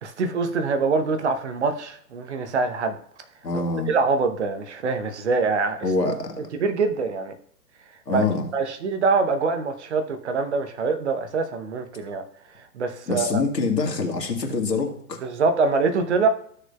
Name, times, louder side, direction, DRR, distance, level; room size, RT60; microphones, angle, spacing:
voice 1, 0.0-3.0 3.5-5.9 6.5-7.3 8.1-8.2 8.5-12.2 12.6-13.4 15.2-16.3, right 4 dB, 45° right, 8 dB, 0.9 m, -24 dB
voice 2, 3.4-3.9 5.8-6.3 8.1-8.4 13.1-15.2, left 3 dB, 75° left, 3 dB, 1.8 m, -25 dB
14.0 x 6.6 x 2.3 m, 0.63 s
figure-of-eight pair, 125°, 50 cm